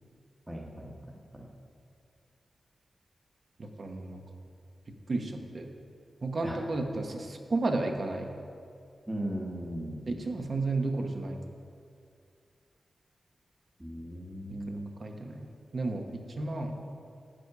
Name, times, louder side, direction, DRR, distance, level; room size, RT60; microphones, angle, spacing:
voice 1, 0.5-0.9 1.3-1.5 6.4-6.6 9.1-10.0 13.8-14.9, right 1 dB, 10° right, -1 dB, 1.2 m, -37 dB
voice 2, 3.6-4.2 5.1-5.7 6.2-8.3 10.1-11.4 14.7-16.8, right 2 dB, 45° right, 4 dB, 1.1 m, -33 dB
10.0 x 8.1 x 5.9 m, 2.4 s
wide cardioid pair, 130°, 0 cm